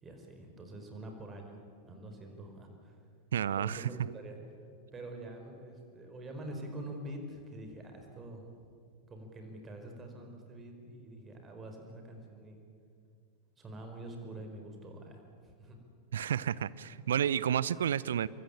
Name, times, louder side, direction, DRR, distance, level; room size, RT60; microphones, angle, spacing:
voice 1, 0.0-1.6 1.9-3.0 3.6-4.4 4.9-8.5 9.1-12.6 13.6-15.2 15.6-15.8, right 1 dB, 20° right, 4 dB, 5.1 m, -46 dB
voice 2, 3.3-4.1 16.1-18.3, right 9 dB, 65° right, 19 dB, 0.7 m, -31 dB
27.0 x 23.0 x 8.9 m, 2.4 s
figure-of-eight pair, 90°, 0 cm